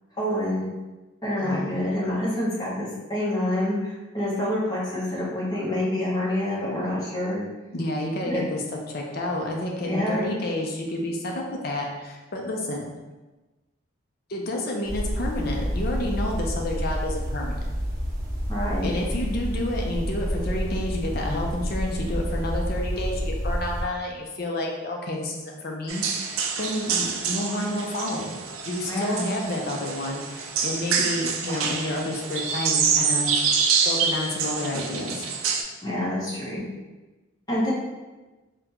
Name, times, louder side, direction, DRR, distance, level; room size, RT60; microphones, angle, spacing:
voice 1, 0.2-0.6 1.2-7.4 8.3-8.4 9.8-10.3 18.5-18.9 28.8-29.2 35.8-36.6 37.5-37.7, left 1 dB, 20° left, -8 dB, 0.9 m, -27 dB
voice 2, 1.4-1.7 7.7-8.6 8.9-12.9 14.3-17.6 18.8-28.4 28.6-33.3 33.8-35.3, left 1 dB, 50° left, 0 dB, 0.5 m, -30 dB
sound 1, 14.8-23.8, equal, 45° right, 0.8 m, -29 dB
sound 2, 25.9-35.6, right 6 dB, 85° right, 0.4 m, -26 dB
3.7 x 2.2 x 2.9 m, 1.2 s
head